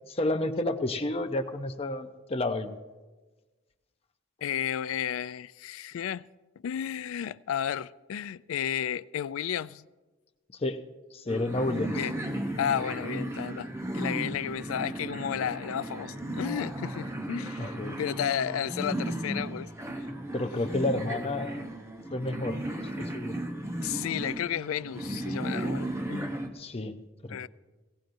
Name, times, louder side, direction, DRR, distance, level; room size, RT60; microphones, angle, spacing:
voice 1, 0.1-2.8 10.5-10.8 11.1-12.0 17.6-18.0 20.3-21.8 22.1-23.4 26.5-27.5, left 2 dB, 30° left, 0.6 m, -31 dB
voice 2, 4.4-6.3 6.6-9.9 11.9-12.1 12.6-13.7 13.9-20.1 23.8-26.4 27.3-27.5, left 9 dB, 85° left, 0.3 m, -33 dB
sound 1, 11.3-26.5, right 1 dB, 15° right, 0.7 m, -35 dB
17.0 x 16.5 x 2.6 m
head